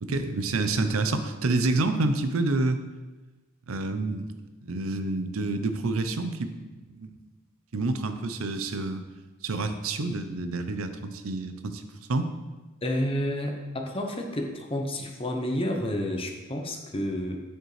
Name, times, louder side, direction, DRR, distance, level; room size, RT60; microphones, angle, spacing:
voice 1, 0.0-2.8 3.7-4.3 4.6-7.2 7.7-9.0 9.4-11.8 12.1-12.3, right 2 dB, 70° right, 8 dB, 0.6 m, -28 dB
voice 2, 12.8-17.4, left 1 dB, 25° left, 3 dB, 0.8 m, -30 dB
9.1 x 6.7 x 3.2 m, 1.2 s
head